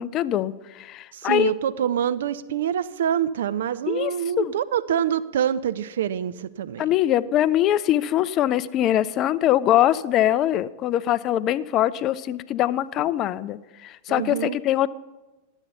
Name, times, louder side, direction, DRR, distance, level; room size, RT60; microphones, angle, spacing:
voice 1, 0.0-1.5 3.9-4.1 4.4-4.5 6.8-14.9, left 12 dB, 35° left, 17 dB, 0.3 m, -22 dB
voice 2, 1.1-6.9 14.1-14.6, right 9 dB, 60° right, 15 dB, 0.4 m, -26 dB
11.5 x 8.0 x 5.6 m, 1.1 s
figure-of-eight pair, 90°, 0 cm